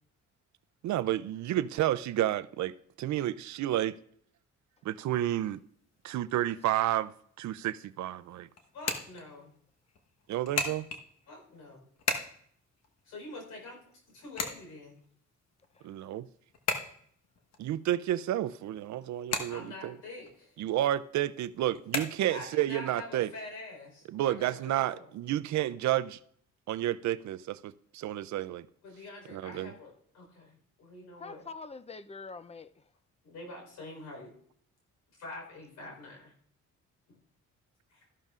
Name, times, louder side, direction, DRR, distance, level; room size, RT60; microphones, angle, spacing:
voice 1, 0.8-4.0 4.8-5.6 6.0-8.5 10.3-10.9 15.8-16.3 17.6-20.0 20.6-23.3 24.1-26.2 26.7-28.7 29.3-29.7, right 13 dB, 70° right, 0.5 m, -31 dB
sound 1, 5.1-22.7, left 4 dB, 60° left, 1.3 m, -40 dB
voice 2, 8.7-9.5 11.3-11.8 13.0-15.0 19.5-20.5 22.3-25.1 28.8-31.4 33.2-34.3 35.2-36.3 37.1-37.2 37.9-38.0, left 2 dB, 85° left, 4.4 m, -46 dB
voice 3, 15.8-16.1 31.2-32.9, left 4 dB, 20° left, 0.6 m, -45 dB
13.5 x 12.0 x 2.5 m
cardioid pair, 90°, 30 cm